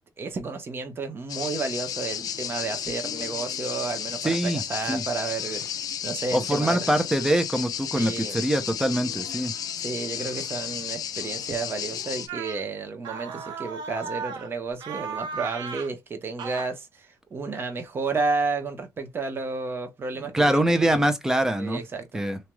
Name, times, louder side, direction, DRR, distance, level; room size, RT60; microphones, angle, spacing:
voice 1, 0.2-6.9 7.9-8.4 9.8-21.0 21.6-22.2, right 4 dB, 30° right, 0.9 m, -32 dB
sound 1, 1.3-12.3, left 9 dB, 55° left, 0.5 m, -33 dB
voice 2, 4.2-4.6 4.9-5.0 6.3-9.5 20.2-21.8 22.1-22.4, right 1 dB, 5° right, 0.6 m, -24 dB
sound 2, 12.3-12.6 13.0-14.5 14.8-15.9 16.4-16.7, right 6 dB, 90° right, 0.7 m, -35 dB
3.1 x 2.9 x 2.2 m
cardioid pair, 155°, 7 cm